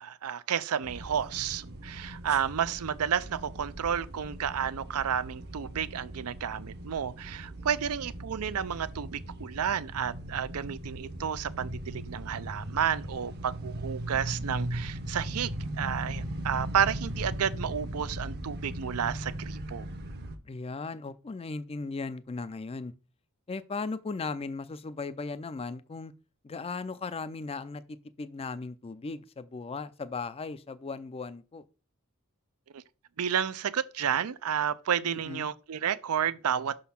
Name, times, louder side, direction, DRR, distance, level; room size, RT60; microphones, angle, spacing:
voice 1, 0.0-15.5 15.8-19.9 32.7-32.8 33.2-36.8, right 8 dB, 80° right, 0.5 m, -31 dB
sound 1, 0.8-20.4, right 1 dB, 50° right, 0.8 m, -39 dB
voice 2, 20.5-22.9 23.5-26.1 26.4-31.6 35.0-35.5, left 4 dB, 25° left, 0.4 m, -37 dB
6.1 x 3.8 x 5.7 m
head